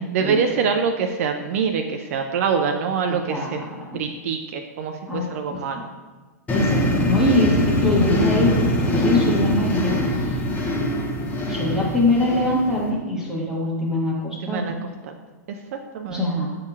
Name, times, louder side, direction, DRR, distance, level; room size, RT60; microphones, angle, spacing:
voice 1, 0.1-3.6 3.9-5.9 14.4-14.8 15.0-15.1 15.5-16.3, right 6 dB, 55° right, 5 dB, 0.3 m, -25 dB
voice 2, 3.3-3.6 3.9-4.0 5.1-5.3 6.5-10.4 11.2-14.7 16.1-16.5, left 1 dB, 5° right, -4 dB, 1.0 m, -23 dB
sound 1, 6.5-12.9, left 1 dB, 15° left, 0.7 m, -22 dB
7.2 x 2.8 x 2.3 m, 1.3 s
hypercardioid pair, 110°, 9 cm